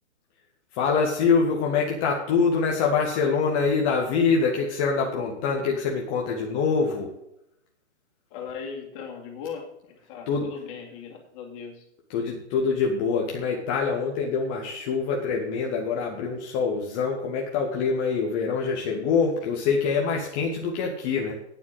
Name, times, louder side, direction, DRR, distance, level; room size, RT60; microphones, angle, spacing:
voice 1, 0.7-7.1 10.3-10.5 12.1-21.3, left 5 dB, 10° left, 0 dB, 0.4 m, -25 dB
voice 2, 8.3-11.8, left 6 dB, 30° left, 1 dB, 2.5 m, -38 dB
8.9 x 7.4 x 7.6 m, 0.79 s
hypercardioid pair, 155°, 34 cm